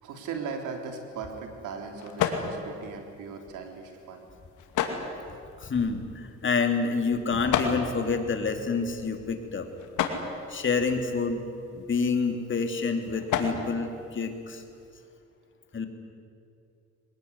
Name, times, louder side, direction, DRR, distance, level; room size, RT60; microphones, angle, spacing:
voice 1, 0.0-4.3, right 5 dB, 85° right, 3 dB, 3.7 m, -38 dB
sound 1, 0.6-14.9, left 7 dB, 90° left, 2.5 m, -35 dB
voice 2, 5.6-9.7 10.5-11.4 11.7-14.6 15.7-15.9, left 4 dB, 40° left, 5 dB, 3.1 m, -28 dB
23.0 x 20.0 x 9.8 m, 2.5 s
cardioid pair, 90°, 30 cm